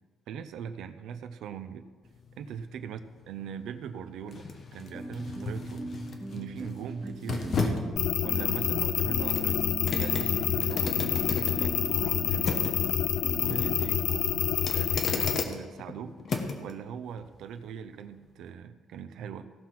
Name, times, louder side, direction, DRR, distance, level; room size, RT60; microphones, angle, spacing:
voice 1, 0.3-1.9 2.4-3.0 3.3-4.4 4.7-5.8 6.3-7.9 8.2-12.7 13.3-16.2 16.6-19.5, right 8 dB, 75° right, 9 dB, 0.7 m, -40 dB
sound 1, 2.0-16.7 17.2-17.3, left 4 dB, 40° left, 1.2 m, -36 dB
sound 2, 4.8-13.8, right 1 dB, 5° right, 0.4 m, -40 dB
sound 3, 8.0-15.4, left 10 dB, 75° left, 0.5 m, -28 dB
16.0 x 5.9 x 6.0 m, 1.4 s
cardioid pair, 155°, 0 cm